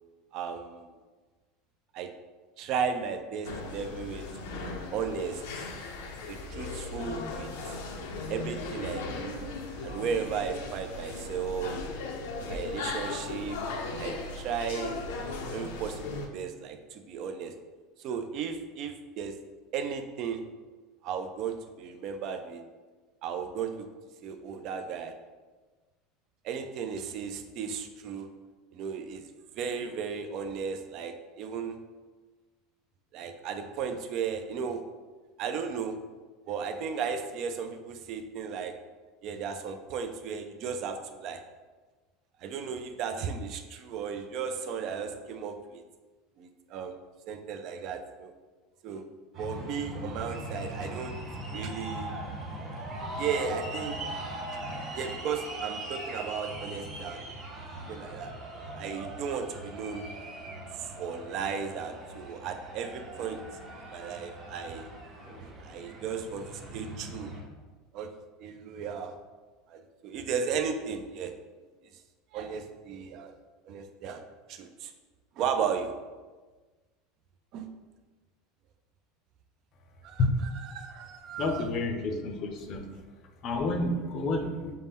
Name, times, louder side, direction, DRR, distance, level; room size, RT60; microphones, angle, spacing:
voice 1, 0.3-0.9 1.9-2.1 2.6-4.2 4.5-5.4 6.3-7.8 8.3-9.4 9.8-11.8 12.5-13.6 14.0-15.0 15.5-17.5 18.0-19.3 19.7-20.4 21.0-22.6 23.2-23.9 24.2-25.1 26.4-28.3 28.7-29.3 29.6-31.8 33.1-34.8 35.4-35.9 36.5-38.7 39.2-41.4 42.4-45.8 46.4-46.9 47.3-48.3 48.8-49.1 49.4-51.2 51.5-52.1 53.2-54.0 54.9-57.3 57.9-58.3 58.7-60.1 60.7-63.4 63.9-64.9 65.4-66.4 66.7-67.3 67.9-68.1 68.4-69.1 69.7-71.3 72.3-73.3 73.6-74.2 74.5-74.9 75.4-75.9 77.5-77.7 80.0-80.2 80.5-81.7, right 6 dB, 45° right, 7 dB, 0.4 m, -35 dB
sound 1, 3.4-16.3, left 3 dB, 85° left, 0.5 m, -37 dB
sound 2, 49.3-67.4, right 1 dB, 30° right, 0.8 m, -40 dB
voice 2, 81.4-82.8 83.4-84.7, left 2 dB, 40° left, 5 dB, 0.5 m, -29 dB
5.4 x 2.1 x 3.5 m, 1.3 s
supercardioid pair, 150°, 0 cm